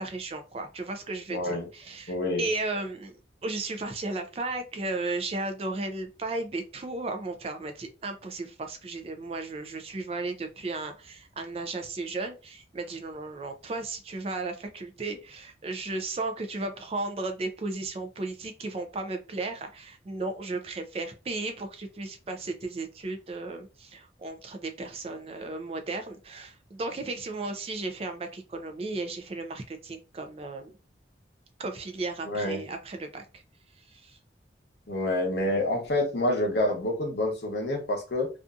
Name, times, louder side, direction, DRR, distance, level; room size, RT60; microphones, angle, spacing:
voice 1, 0.0-3.2 3.4-30.7 31.6-33.4 33.9-34.2, right 2 dB, 35° right, 6 dB, 0.3 m, -35 dB
voice 2, 1.3-1.7 2.1-2.5 32.2-32.6 34.9-38.3, left 1 dB, 65° left, 2 dB, 0.8 m, -27 dB
2.6 x 2.4 x 2.3 m, 0.32 s
head